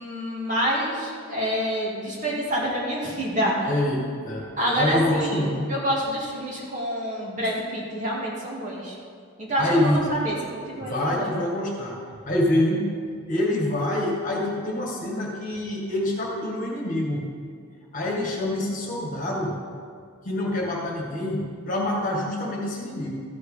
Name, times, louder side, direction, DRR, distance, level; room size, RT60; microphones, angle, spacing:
voice 1, 0.0-3.8 4.6-8.9 9.4-9.8 10.1-11.4, equal, 35° right, -5 dB, 2.2 m, -27 dB
voice 2, 3.7-4.5 4.7-5.7 9.6-10.0 10.8-12.0 12.2-12.9 13.3-17.2 17.9-19.5 20.2-23.2, left 1 dB, 40° left, -3 dB, 1.9 m, -26 dB
14.0 x 6.4 x 5.1 m, 2.2 s
head